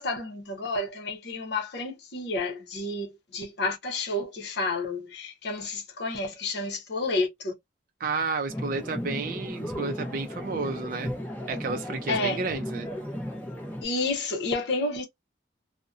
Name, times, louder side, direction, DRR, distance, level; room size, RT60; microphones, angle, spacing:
voice 1, 0.0-7.5 12.1-12.4 13.8-15.0, left 2 dB, 55° left, 0.7 m, -30 dB
voice 2, 8.0-11.1 11.5-12.9, right 4 dB, 45° right, 0.4 m, -31 dB
sound 1, 8.5-13.8, equal, 10° left, 0.7 m, -35 dB
2.6 x 2.1 x 2.4 m
head